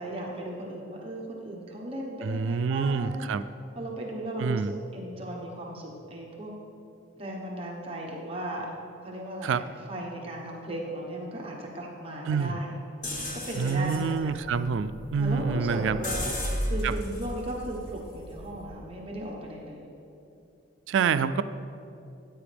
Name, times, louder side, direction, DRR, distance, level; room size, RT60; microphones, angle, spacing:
voice 1, 0.0-3.2 3.7-6.5 7.2-8.7 9.0-12.8 13.2-14.4 15.2-16.3 16.6-19.9, right 1 dB, 30° right, -2 dB, 1.2 m, -36 dB
voice 2, 2.2-3.4 4.4-4.7 9.4-9.6 12.3-12.6 13.6-16.0 16.8-17.0 20.9-21.4, right 5 dB, 75° right, 12 dB, 0.3 m, -27 dB
sound 1, 13.0-18.8, equal, 40° left, 1.4 m, -35 dB
14.0 x 9.0 x 3.4 m, 2.7 s
head